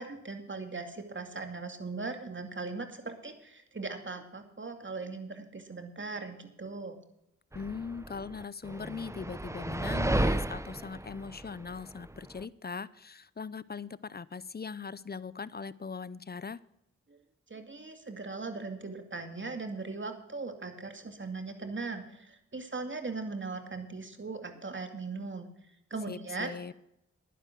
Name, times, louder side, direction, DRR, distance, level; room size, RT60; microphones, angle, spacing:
voice 1, 0.0-7.0 17.1-17.2 17.5-25.5 25.9-26.5, right 3 dB, 40° right, 7 dB, 2.4 m, -39 dB
voice 2, 7.5-16.6 26.1-26.7, left 5 dB, 35° left, 20 dB, 0.6 m, -40 dB
sound 1, 7.5-12.4, right 1 dB, 10° right, 0.8 m, -33 dB
11.0 x 10.0 x 6.0 m, 0.78 s
cardioid pair, 50°, 30 cm